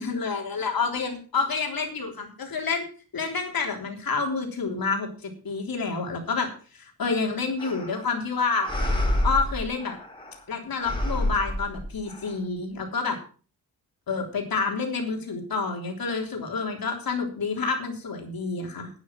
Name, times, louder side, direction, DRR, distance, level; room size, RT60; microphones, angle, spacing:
voice 1, 0.0-2.8 3.1-6.5 6.7-8.7 9.2-10.0 10.5-13.2 14.1-18.9, left 4 dB, 65° left, 2 dB, 3.5 m, -28 dB
sound 1, 7.6-8.2 8.6-10.4 10.8-12.3, left 1 dB, 15° left, 3.8 m, -28 dB
11.5 x 9.5 x 5.9 m, 0.38 s
wide cardioid pair, 125°, 37 cm